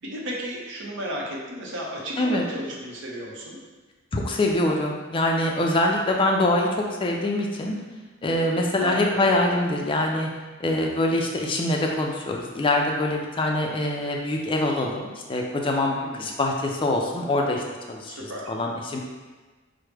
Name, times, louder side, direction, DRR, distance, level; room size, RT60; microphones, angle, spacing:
voice 1, 0.0-3.6 8.8-9.3 16.0-16.3 18.0-18.5, equal, 65° right, -3 dB, 0.8 m, -34 dB
voice 2, 4.1-7.8 8.2-10.3 10.6-17.6 17.9-18.1 18.5-19.0, left 1 dB, 25° left, 0 dB, 0.3 m, -24 dB
4.5 x 2.0 x 3.3 m, 1.3 s
head